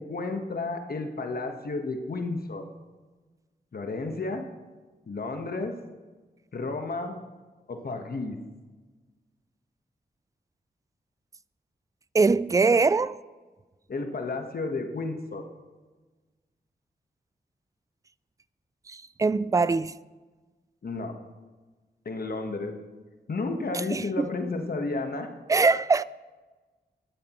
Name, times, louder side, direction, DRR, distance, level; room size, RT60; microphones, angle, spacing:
voice 1, 0.0-2.6 3.7-4.5 5.1-5.8 6.5-7.2 7.7-8.4 13.9-15.4 20.8-21.2 22.0-22.8 23.3-25.3, left 3 dB, 60° left, 1.3 m, -32 dB
voice 2, 12.1-13.2 18.9-19.9 23.9-24.3 25.5-26.0, right 4 dB, 20° right, 0.3 m, -22 dB
12.5 x 12.5 x 3.1 m
cardioid pair, 60°, 17 cm